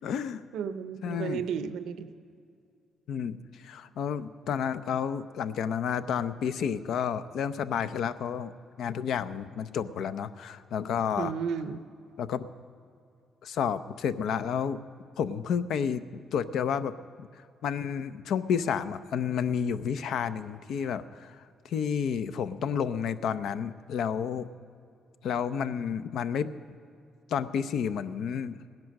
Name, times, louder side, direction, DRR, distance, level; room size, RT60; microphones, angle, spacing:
voice 1, 0.0-0.4 1.0-1.5 3.1-8.5 8.8-11.3 12.2-12.5 13.4-14.8 15.2-16.0 16.3-24.5 25.2-26.5 27.3-28.7, left 7 dB, 75° left, 12 dB, 0.6 m, -31 dB
voice 2, 0.5-2.1 11.2-11.8, right 7 dB, 80° right, 12 dB, 0.7 m, -33 dB
17.0 x 10.5 x 6.4 m, 2.4 s
cardioid pair, 90°, 0 cm